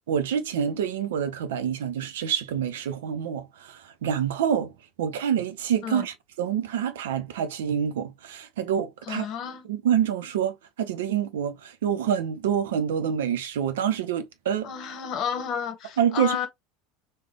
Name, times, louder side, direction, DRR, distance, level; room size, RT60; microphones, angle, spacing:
voice 1, 0.1-4.7 5.0-9.3 9.7-14.7 16.0-16.5, right 8 dB, 70° right, 0.6 m, -27 dB
voice 2, 9.1-9.6 14.6-16.5, left 8 dB, 45° left, 1.0 m, -31 dB
3.3 x 2.2 x 3.6 m
figure-of-eight pair, 75°, 0 cm